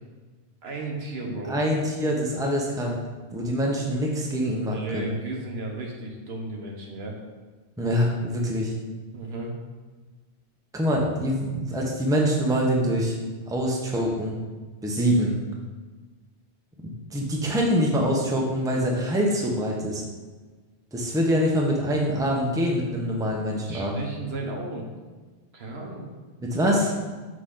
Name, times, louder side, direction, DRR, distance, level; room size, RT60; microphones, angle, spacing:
voice 1, 0.6-1.6 4.7-7.2 9.1-9.5 23.7-24.9 25.5-26.1, right 2 dB, 70° right, 0 dB, 1.2 m, -34 dB
voice 2, 1.5-3.0 3.3-5.1 7.8-8.7 10.7-13.2 13.5-14.3 14.8-15.3 17.1-20.0 20.9-24.0 26.4-26.9, equal, 5° right, -1 dB, 0.8 m, -24 dB
6.6 x 4.8 x 3.8 m, 1.3 s
omnidirectional pair, 1.1 m